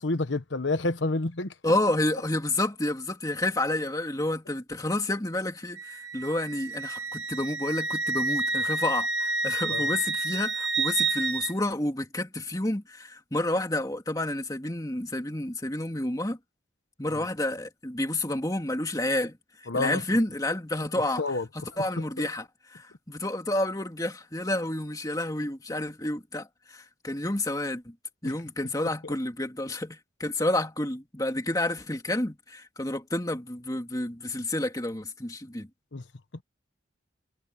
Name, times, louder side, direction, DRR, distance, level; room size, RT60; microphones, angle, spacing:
voice 1, 0.0-1.5 9.7-9.9 17.1-17.2 19.7-20.0 21.2-21.4 28.2-28.3 35.9-36.0, left 2 dB, 75° left, 1.1 m, -28 dB
voice 2, 1.6-16.4 17.0-27.9 28.2-35.7, left 1 dB, 20° left, 2.5 m, -30 dB
Wind instrument woodwind instrument, 5.8-11.5, right 3 dB, 70° right, 1.7 m, -29 dB
head